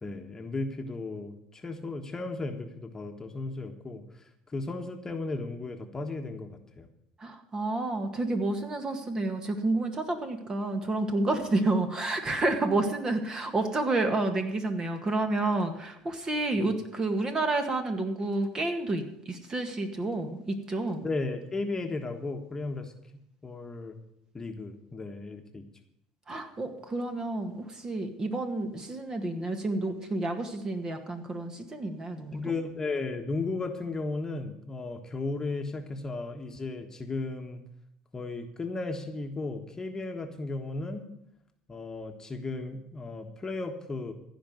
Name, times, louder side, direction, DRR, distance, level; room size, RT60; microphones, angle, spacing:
voice 1, 0.0-6.9 16.6-16.7 21.0-22.9 23.4-24.0 24.3-25.7 32.3-37.6 38.1-41.1 41.7-44.1, left 3 dB, 20° left, 4 dB, 1.5 m, -35 dB
voice 2, 7.2-21.1 26.3-32.4, right 2 dB, 30° right, 6 dB, 2.0 m, -30 dB
15.5 x 5.2 x 9.5 m, 0.77 s
hypercardioid pair, 85°, 3 cm